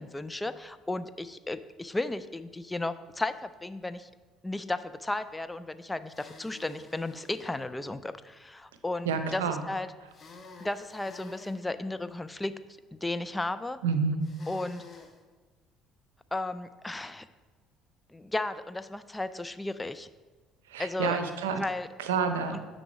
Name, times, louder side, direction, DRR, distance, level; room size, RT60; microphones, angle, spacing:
voice 1, 0.0-4.1 4.4-9.4 9.7-9.9 10.6-12.5 12.9-13.8 14.5-14.8 16.3-17.3 18.1-20.1 20.8-21.2 21.5-21.9 22.5-22.6, left 2 dB, 15° left, 13 dB, 0.3 m, -34 dB
sound 1, 6.1-7.6 10.1-11.6 14.2-15.2, left 4 dB, 35° left, 0.9 m, -50 dB
voice 2, 9.0-9.6 13.8-14.3 20.7-21.6 22.0-22.6, right 5 dB, 75° right, 7 dB, 0.5 m, -29 dB
9.5 x 3.9 x 4.6 m, 1.4 s
figure-of-eight pair, 55°, 0 cm